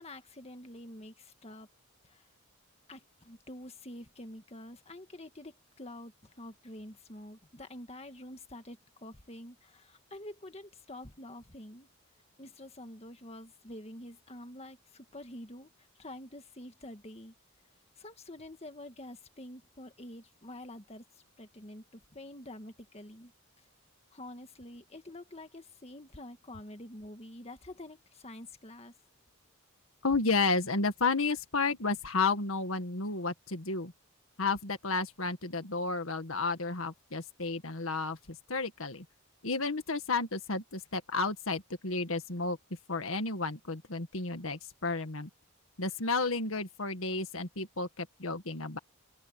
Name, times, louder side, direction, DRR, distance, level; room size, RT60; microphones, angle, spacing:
voice 1, 0.0-1.7 2.0-2.3 2.9-11.9 12.4-17.3 18.0-21.0 21.4-23.3 24.1-28.9, left 1 dB, 30° left, 1.8 m, -47 dB
voice 2, 30.0-33.9 34.4-39.1 39.4-42.6 42.9-45.3 45.8-48.8, left 3 dB, 70° left, 1.9 m, -32 dB
open air
head